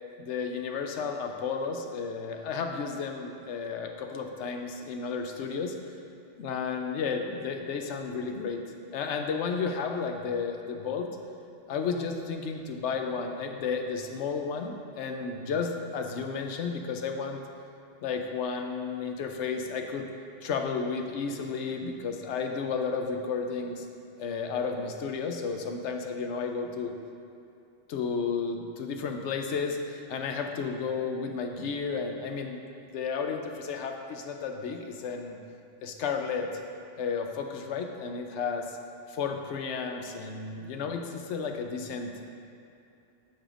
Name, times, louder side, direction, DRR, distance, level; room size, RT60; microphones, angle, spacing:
voice 1, 0.2-5.7 6.4-8.6 8.9-11.1 11.7-17.4 18.0-20.1 20.4-23.9 24.2-26.9 27.9-32.6 32.9-35.4 35.8-36.5 37.0-38.8 39.1-42.1, left 5 dB, 90° left, 4 dB, 0.9 m, -32 dB
13.0 x 5.0 x 2.5 m, 2.7 s
omnidirectional pair, 1.2 m